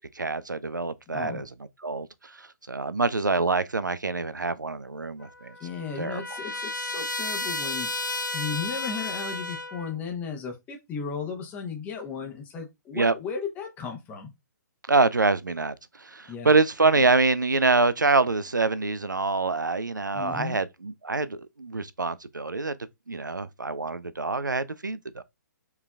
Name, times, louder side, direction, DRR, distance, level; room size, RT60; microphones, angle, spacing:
voice 1, 0.2-1.5 1.8-5.5 6.0-6.2 12.9-13.1 14.9-22.8 23.1-25.2, right 3 dB, 85° right, 0.4 m, -25 dB
voice 2, 1.1-1.4 5.6-7.9 8.3-14.3 16.3-16.6 20.1-20.6, left 6 dB, 15° left, 0.8 m, -35 dB
Trumpet, 5.2-9.9, left 2 dB, 85° left, 0.5 m, -33 dB
4.6 x 3.3 x 2.3 m
figure-of-eight pair, 125°, 10 cm